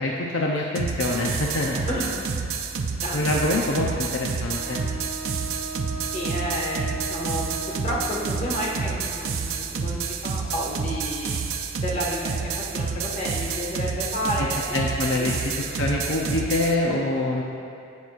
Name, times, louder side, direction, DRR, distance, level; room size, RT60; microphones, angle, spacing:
voice 1, 0.0-1.8 3.1-4.8 14.7-17.4, left 2 dB, 65° left, -2 dB, 0.7 m, -25 dB
sound 1, 0.8-16.8, right 5 dB, 70° right, 0.5 m, -29 dB
voice 2, 3.0-3.5 6.1-11.3 11.8-14.8 15.1-15.4, equal, 35° left, -5 dB, 1.6 m, -31 dB
Wind instrument woodwind instrument, 4.6-9.0, right 3 dB, 35° right, 1.0 m, -37 dB
16.5 x 6.1 x 2.5 m, 2.6 s
head